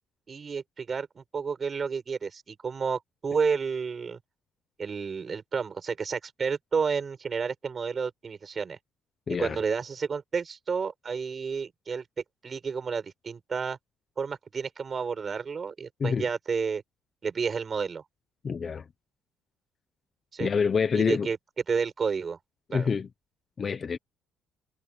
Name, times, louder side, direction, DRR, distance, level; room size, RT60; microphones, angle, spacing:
voice 1, 0.3-4.2 4.8-8.8 9.4-12.0 12.4-13.8 14.2-16.8 17.2-18.0 20.3-20.5 20.9-21.4 21.7-22.4 22.7-22.9, right 5 dB, 25° right, 5.8 m, -31 dB
voice 2, 9.3-9.6 16.0-16.2 18.4-18.8 20.4-21.3 22.7-23.1 23.6-24.0, left 6 dB, 25° left, 0.7 m, -26 dB
cardioid pair, 170°, 0 cm